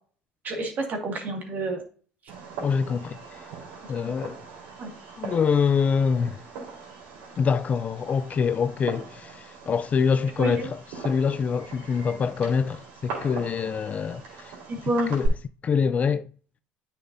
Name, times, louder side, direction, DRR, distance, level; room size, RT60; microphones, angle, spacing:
voice 1, 0.4-1.8 4.0-4.1 4.8-4.9 10.4-10.7 14.7-15.1, right 2 dB, 45° right, 2.1 m, -29 dB
Fireworks, 2.3-15.3, right 5 dB, 75° right, 3.8 m, -39 dB
voice 2, 2.6-3.4 3.9-4.4 5.2-6.4 7.4-14.5 14.8-15.4 15.6-16.3, left 6 dB, 35° left, 0.4 m, -25 dB
9.3 x 6.1 x 2.7 m
hypercardioid pair, 80°, 4 cm